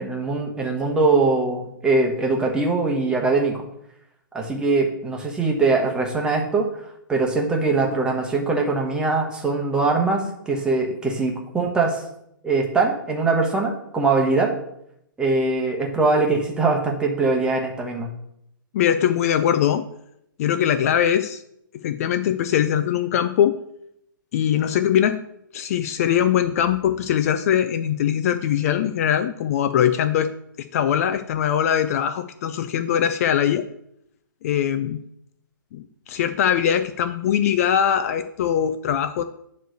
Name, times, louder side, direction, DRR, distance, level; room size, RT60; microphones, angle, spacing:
voice 1, 0.0-3.6 4.3-6.7 7.1-12.0 12.4-14.5 15.2-18.1, right 3 dB, 5° right, 0 dB, 1.1 m, -22 dB
voice 2, 18.7-19.8 20.4-21.4 21.8-23.6 24.3-25.2 25.5-30.3 30.7-33.6 34.4-35.0 35.7-39.2, left 9 dB, 45° left, 11 dB, 0.4 m, -21 dB
9.1 x 3.2 x 6.4 m, 0.77 s
hypercardioid pair, 135°, 11 cm